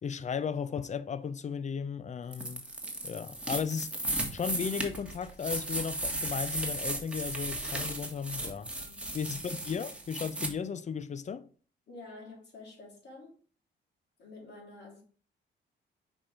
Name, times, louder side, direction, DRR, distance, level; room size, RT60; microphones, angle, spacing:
voice 1, 0.0-2.6 3.0-4.0 4.3-8.7 9.1-11.5, left 6 dB, 35° left, 0.6 m, -35 dB
sound 1, 2.3-10.5, right 1 dB, 5° right, 1.5 m, -35 dB
voice 2, 8.6-9.1 11.9-13.3 14.2-15.0, left 2 dB, 55° left, 3.8 m, -49 dB
5.8 x 4.4 x 5.0 m
cardioid pair, 90°, 20 cm